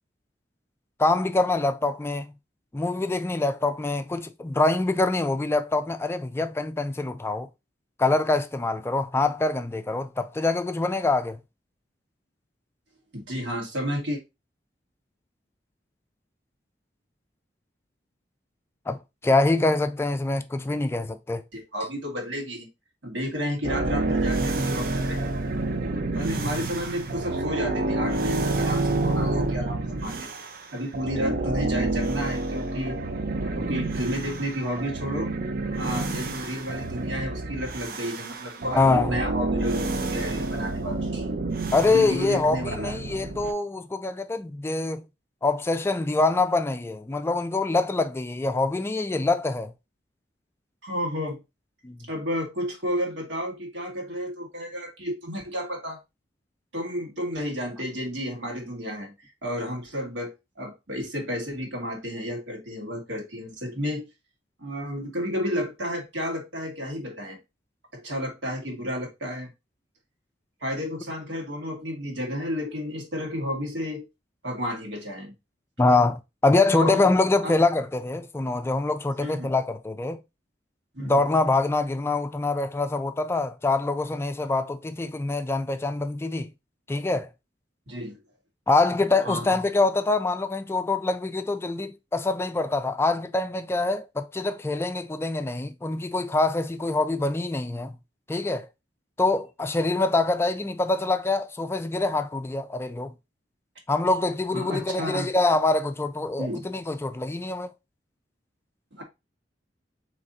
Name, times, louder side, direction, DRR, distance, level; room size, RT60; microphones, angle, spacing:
voice 1, 1.0-2.3 2.7-7.5 8.0-11.4 18.9-21.4 38.7-39.2 41.7-45.0 45.4-49.7 51.8-52.1 75.8-80.2 81.0-86.5 86.9-87.3 88.7-97.9 98.3-98.7 99.2-103.1 103.9-107.7, left 2 dB, 15° left, 0.3 m, -25 dB
voice 2, 13.1-14.2 21.5-22.7 23.0-25.3 26.1-30.3 30.7-33.0 33.6-35.3 35.8-41.3 41.9-43.0 50.8-51.4 52.1-56.0 56.7-64.0 64.6-67.4 67.9-69.5 70.6-74.0 74.4-75.3 76.7-77.0 77.4-77.5 79.2-79.5 80.9-81.2 87.9-88.2 89.3-89.6 104.5-105.3 106.4-106.6 108.9-109.0, equal, 90° right, 1.8 m, -32 dB
sound 1, 23.6-30.6 30.9-43.5, right 2 dB, 55° right, 0.6 m, -28 dB
3.8 x 3.2 x 4.0 m
head